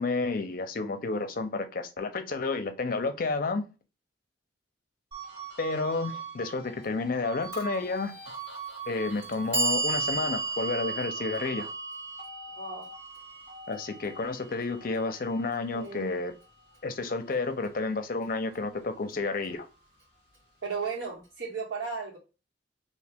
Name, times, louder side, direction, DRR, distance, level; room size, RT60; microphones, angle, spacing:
voice 1, 0.0-3.6 5.6-8.1 8.9-11.7 13.7-16.3 16.8-19.7, left 3 dB, 50° left, 8 dB, 0.5 m, -31 dB
sound 1, 5.1-17.7 18.1-19.8, right 5 dB, 30° right, 1.5 m, -44 dB
Clock, 7.5-7.6 8.6-8.7 9.2-15.3, right 3 dB, 55° right, 1.7 m, -34 dB
voice 2, 12.5-12.9 15.7-16.2 20.6-22.2, right 5 dB, 80° right, -2 dB, 1.6 m, -35 dB
2.8 x 2.7 x 3.4 m, 0.31 s
head